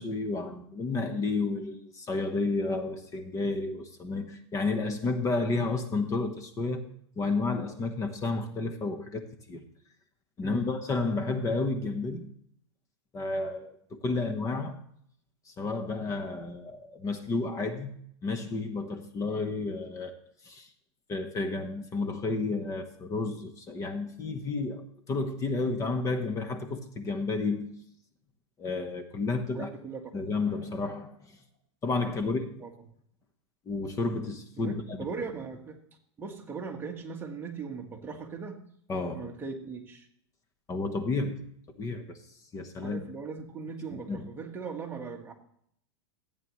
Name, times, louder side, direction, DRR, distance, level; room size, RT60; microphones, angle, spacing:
voice 1, 0.0-6.9 7.2-9.6 10.4-12.3 13.1-13.8 14.0-14.8 15.6-17.9 18.2-20.2 20.4-20.7 21.1-27.7 28.6-29.7 30.1-31.4 31.8-32.5 33.7-35.0 38.9-39.3 40.7-41.5 41.8-42.2 42.5-43.0 43.9-44.3, left 3 dB, 20° left, 7 dB, 1.1 m, -31 dB
voice 2, 29.5-30.1 32.6-32.7 34.6-35.8 36.2-38.6 39.1-40.1 42.8-45.3, right 5 dB, 15° right, 1 dB, 1.6 m, -39 dB
15.0 x 8.6 x 3.1 m, 0.67 s
hypercardioid pair, 130°, 15 cm